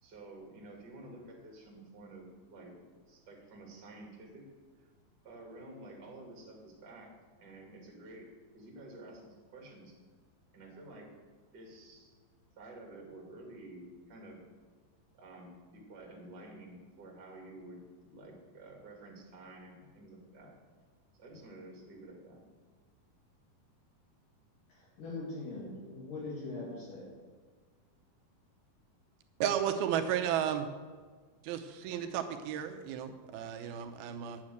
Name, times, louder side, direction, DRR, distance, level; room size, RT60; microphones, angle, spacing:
voice 1, 0.0-2.7 3.1-4.5 5.2-7.1 7.4-8.3 8.5-9.9 10.5-11.1 11.5-12.1 12.6-14.4 15.2-20.5 21.2-22.4, right 2 dB, 30° right, -1 dB, 2.6 m, -50 dB
voice 2, 24.7-27.0, left 2 dB, 60° left, -7 dB, 3.9 m, -41 dB
voice 3, 29.4-30.7 31.4-34.4, right 9 dB, 80° right, 6 dB, 2.6 m, -33 dB
10.0 x 7.3 x 7.8 m, 1.5 s
omnidirectional pair, 4.4 m